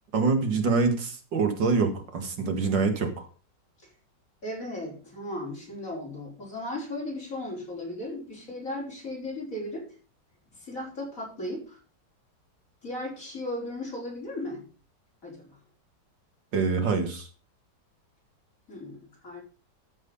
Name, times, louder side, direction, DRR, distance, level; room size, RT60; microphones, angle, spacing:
voice 1, 0.1-3.3 16.5-17.3, right 4 dB, 80° right, 6 dB, 2.5 m, -25 dB
voice 2, 4.4-9.9 10.5-11.8 12.8-14.6 15.2-15.6 18.7-19.4, left 1 dB, 45° left, -3 dB, 5.2 m, -36 dB
13.5 x 6.4 x 5.5 m, 0.36 s
omnidirectional pair, 1.9 m